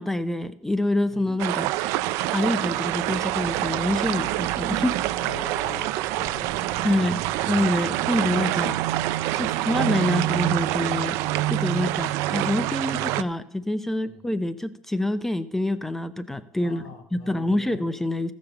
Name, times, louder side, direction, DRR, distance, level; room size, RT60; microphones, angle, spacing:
voice 1, 0.0-1.7 2.3-5.0 6.8-8.8 9.3-11.2 11.5-16.8 17.1-18.3, left 1 dB, 5° left, 13 dB, 0.5 m, -26 dB
sound 1, 1.4-13.2, right 15 dB, 70° right, 0.5 m, -26 dB
voice 2, 5.2-6.9 7.2-8.1 9.4-9.8 11.5-11.8 12.9-13.0 14.1-14.2 16.6-17.9, left 6 dB, 75° left, 4 dB, 2.3 m, -45 dB
15.0 x 5.3 x 6.9 m, 0.78 s
cardioid pair, 120°, 5 cm